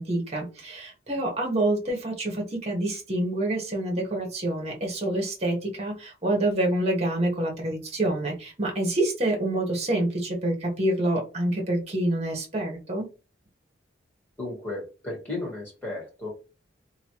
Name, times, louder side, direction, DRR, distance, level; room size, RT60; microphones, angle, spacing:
voice 1, 0.0-13.0, right 1 dB, 35° right, 0 dB, 1.1 m, -27 dB
voice 2, 14.4-16.3, left 2 dB, 10° left, -5 dB, 1.7 m, -34 dB
2.9 x 2.7 x 2.9 m, 0.32 s
head